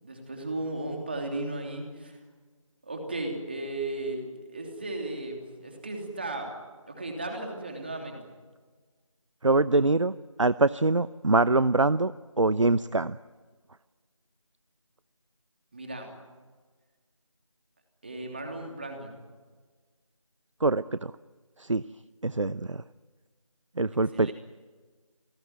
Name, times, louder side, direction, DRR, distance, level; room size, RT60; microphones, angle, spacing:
voice 1, 0.0-2.2 2.8-4.2 4.5-6.5 6.9-8.2 15.7-16.1 18.0-19.1 24.1-24.3, right 2 dB, 20° right, 2 dB, 3.0 m, -35 dB
voice 2, 9.4-13.2 20.6-21.1 21.6-21.8 22.2-22.8 23.8-24.3, right 3 dB, 65° right, 16 dB, 0.7 m, -24 dB
28.0 x 19.5 x 9.4 m, 1.4 s
figure-of-eight pair, 175°, 17 cm